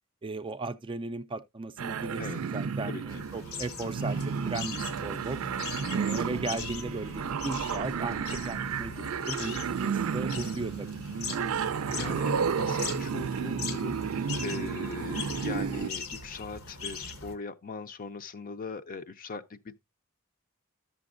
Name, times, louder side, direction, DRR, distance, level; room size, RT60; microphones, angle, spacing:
voice 1, 0.2-5.4 5.9-10.9 15.1-15.2, right 3 dB, 25° right, 0.4 m, -37 dB
sound 1, 1.8-15.9, right 6 dB, 85° right, 0.4 m, -32 dB
sound 2, 3.1-17.4, left 4 dB, 85° left, 1.2 m, -40 dB
voice 2, 11.9-19.8, left 4 dB, 40° left, 0.6 m, -40 dB
12.0 x 6.9 x 2.5 m
head